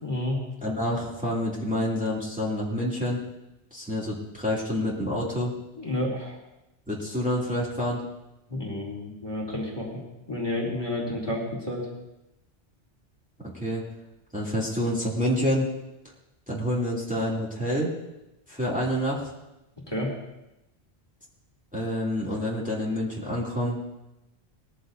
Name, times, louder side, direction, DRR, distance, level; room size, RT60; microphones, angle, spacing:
voice 1, 0.0-0.4 5.8-6.4 8.5-10.0 10.3-11.9 19.9-20.1, left 1 dB, 20° left, -3 dB, 2.6 m, -30 dB
voice 2, 0.6-3.2 3.7-5.5 6.9-8.0 13.6-13.8 14.3-15.7 16.5-17.9 18.5-19.2 21.7-23.8, left 1 dB, 5° right, -6 dB, 2.6 m, -27 dB
20.5 x 14.0 x 2.7 m, 0.93 s
omnidirectional pair, 1.2 m